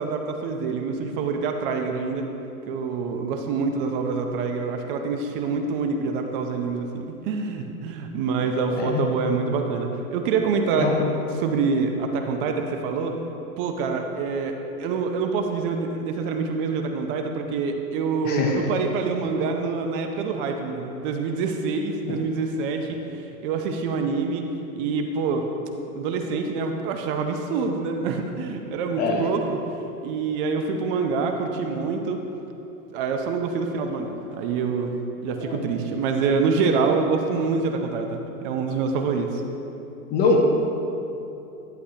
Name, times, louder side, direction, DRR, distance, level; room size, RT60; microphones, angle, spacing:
voice 1, 0.0-2.3 2.7-10.9 11.3-13.2 13.6-24.5 24.8-25.5 25.9-29.6 30.0-32.2 32.9-34.9 35.2-39.4, right 4 dB, 35° right, 4 dB, 0.6 m, -26 dB
voice 2, 18.2-18.7 22.1-22.2 29.0-29.3 35.5-35.6 40.1-40.4, left 4 dB, 20° left, 1 dB, 0.6 m, -23 dB
11.5 x 8.0 x 2.8 m, 2.9 s
hypercardioid pair, 135°, 46 cm